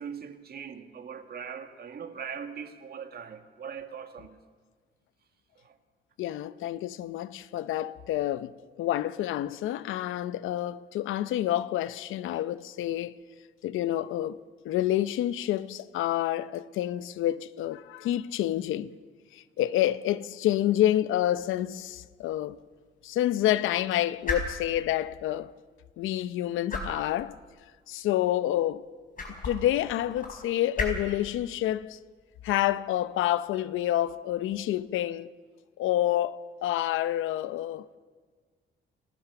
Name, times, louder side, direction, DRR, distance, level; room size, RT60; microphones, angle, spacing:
voice 1, 0.0-4.4 5.6-5.8, right 7 dB, 50° right, 1.9 m, -40 dB
voice 2, 6.2-13.1 13.6-18.9 19.3-22.6 23.0-25.5 26.0-27.4 27.9-28.9 29.4-32.0 32.4-35.3 35.8-38.0, left 13 dB, 85° left, 0.7 m, -28 dB
sound 1, 21.2-34.8, left 3 dB, 45° left, 5.1 m, -40 dB
29.0 x 13.0 x 6.9 m
cardioid pair, 90°, 20 cm